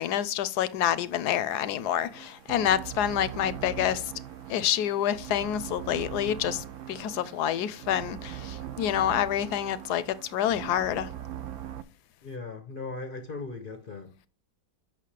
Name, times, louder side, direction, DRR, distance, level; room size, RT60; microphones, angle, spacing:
voice 1, 0.0-4.1 4.5-11.1, left 10 dB, 70° left, 1.1 m, -28 dB
sound 1, 1.8-11.8, right 11 dB, 85° right, 0.6 m, -40 dB
voice 2, 12.2-14.3, left 3 dB, 50° left, 0.6 m, -38 dB
8.3 x 6.1 x 3.3 m
omnidirectional pair, 1.9 m